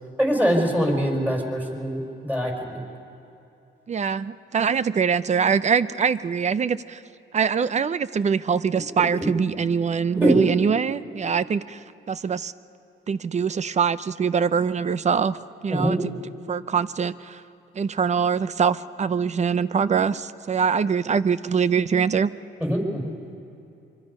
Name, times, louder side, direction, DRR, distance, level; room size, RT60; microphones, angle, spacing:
voice 1, 0.2-2.8 10.2-10.4 15.7-16.0 22.6-23.1, equal, 10° right, 1 dB, 5.2 m, -23 dB
voice 2, 3.9-7.0 7.3-12.5 13.1-15.4 15.6-16.0 16.5-17.4 17.8-22.3, right 6 dB, 35° right, 16 dB, 0.6 m, -23 dB
25.0 x 24.5 x 5.4 m, 2.7 s
cardioid pair, 90°, 20 cm